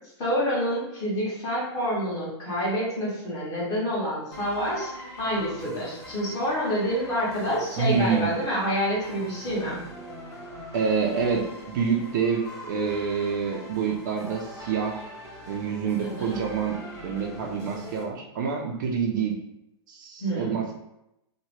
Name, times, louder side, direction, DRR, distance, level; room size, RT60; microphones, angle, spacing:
voice 1, 0.2-4.9 5.2-9.8 16.0-16.4 20.2-20.6, equal, 25° left, -7 dB, 1.1 m, -27 dB
sound 1, 4.3-18.0, left 1 dB, 70° left, 1.3 m, -42 dB
voice 2, 7.8-8.3 10.7-15.0 15.5-19.4 19.9-20.7, right 6 dB, 45° right, 0 dB, 0.4 m, -27 dB
2.8 x 2.1 x 3.0 m, 0.85 s
supercardioid pair, 165°, 14 cm